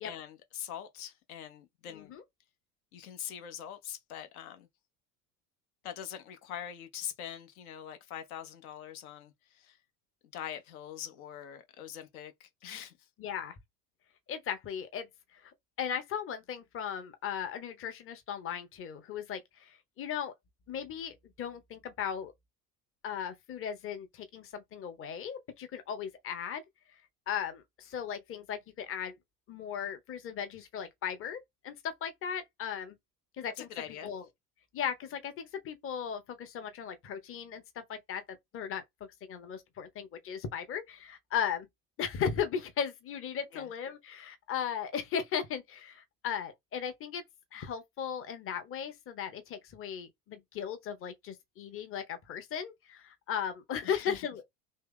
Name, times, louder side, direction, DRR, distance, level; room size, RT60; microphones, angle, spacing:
voice 1, 0.0-2.1 2.9-4.7 5.8-9.8 10.3-12.9 33.6-34.1 43.5-43.6 53.8-54.3, left 10 dB, 60° left, 1.0 m, -43 dB
voice 2, 1.9-2.2 13.2-13.6 14.3-15.5 15.8-20.3 20.7-22.3 23.0-26.6 27.3-29.2 29.5-33.0 33.4-33.7 34.0-34.2 34.7-38.8 39.3-41.7 42.0-47.2 47.5-54.4, left 8 dB, 25° left, 1.0 m, -37 dB
3.2 x 3.1 x 3.7 m
figure-of-eight pair, 75°, 48 cm